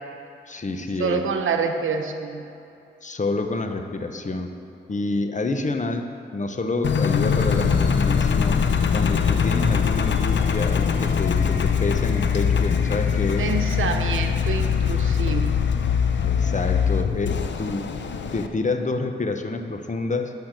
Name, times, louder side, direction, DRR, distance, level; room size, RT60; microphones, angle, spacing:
voice 1, 0.5-1.2 3.0-4.5 4.9-8.6 8.9-13.5 16.2-17.9 18.3-20.3, left 3 dB, 35° left, 6 dB, 1.1 m, -28 dB
voice 2, 1.0-2.5 13.4-15.6, right 5 dB, 75° right, 5 dB, 1.0 m, -27 dB
Engine, 6.8-18.5, left 7 dB, 60° left, 0.8 m, -22 dB
11.5 x 5.8 x 7.6 m, 2.6 s
supercardioid pair, 50°, 21 cm